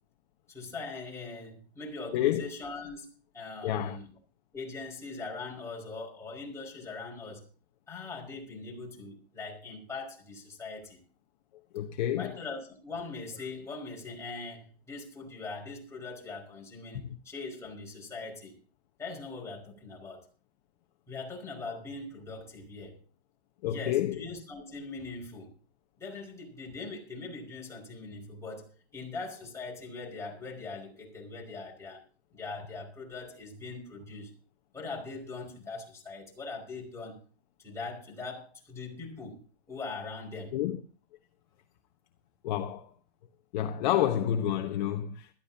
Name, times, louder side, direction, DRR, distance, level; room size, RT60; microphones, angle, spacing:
voice 1, 0.5-4.1 4.5-7.5 7.9-11.0 12.2-18.5 19.0-20.2 21.1-23.0 23.7-25.5 26.0-32.0 32.3-34.3 34.7-37.2 37.6-39.4 39.7-40.6, left 3 dB, 10° left, 5.5 m, -41 dB
voice 2, 2.1-2.5 3.6-4.0 11.7-12.3 23.6-24.2 40.5-40.8 42.4-42.9 43.5-45.3, left 11 dB, 45° left, 1.1 m, -29 dB
20.5 x 13.5 x 2.8 m
hypercardioid pair, 140°, 32 cm